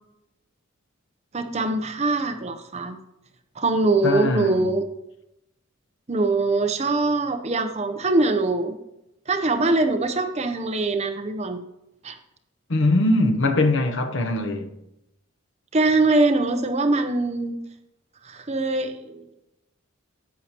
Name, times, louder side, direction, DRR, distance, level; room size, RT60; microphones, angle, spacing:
voice 1, 1.3-3.0 3.6-4.9 6.1-8.8 9.3-11.6 12.0-12.2 15.7-17.6 18.2-19.3, right 2 dB, 30° right, 0.7 m, -23 dB
voice 2, 4.0-4.6 12.7-14.7, left 2 dB, 60° left, 0.8 m, -21 dB
10.5 x 8.1 x 2.9 m
head